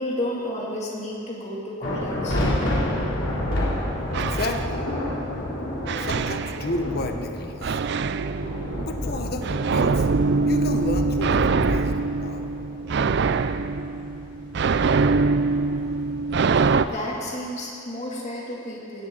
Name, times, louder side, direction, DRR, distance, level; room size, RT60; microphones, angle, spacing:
voice 1, 0.0-2.4 16.8-19.1, left 1 dB, 35° left, -3 dB, 2.7 m, -31 dB
sound 1, 1.8-17.2, left 1 dB, 75° left, 3.2 m, -30 dB
sound 2, 4.1-5.3 5.9-7.1 7.6-16.9, right 4 dB, 60° right, 0.4 m, -24 dB
voice 2, 4.2-4.8 6.0-7.8 8.8-10.1 10.4-12.5, left 2 dB, 55° left, 5 dB, 0.9 m, -32 dB
17.0 x 16.0 x 4.0 m, 2.6 s
head